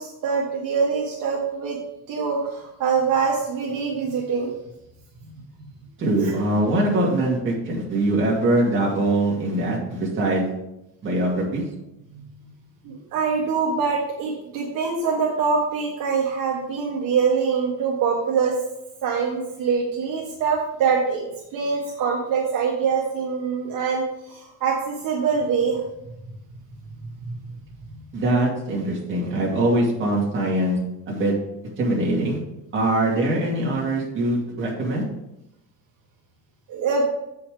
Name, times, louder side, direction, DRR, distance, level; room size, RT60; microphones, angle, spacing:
voice 1, 0.0-1.8 2.1-4.5 6.2-6.3 12.1-12.2 12.8-18.6 19.0-21.2 21.5-25.8 27.2-27.4 36.7-37.0, right 5 dB, 55° right, -3 dB, 1.4 m, -24 dB
voice 2, 6.0-10.4 11.0-11.6 28.1-30.8 31.1-31.3 31.8-32.4 32.7-35.0, right 1 dB, 30° right, -3 dB, 2.3 m, -22 dB
7.7 x 5.6 x 4.9 m, 0.87 s
cardioid pair, 175°, 39 cm